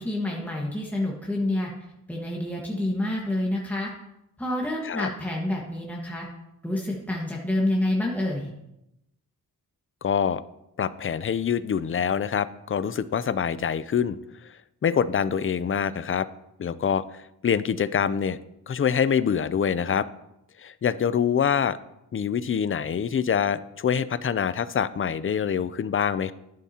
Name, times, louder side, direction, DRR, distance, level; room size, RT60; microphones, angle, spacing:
voice 1, 0.0-1.7 2.1-3.9 4.4-6.3 6.6-8.5, left 1 dB, 5° left, -2 dB, 1.5 m, -28 dB
voice 2, 10.0-10.4 10.8-14.2 14.8-16.3 16.6-18.4 18.7-20.1 20.6-21.8 22.1-26.3, left 7 dB, 35° left, 15 dB, 0.5 m, -25 dB
11.5 x 11.0 x 2.9 m, 0.86 s
wide cardioid pair, 105°, 37 cm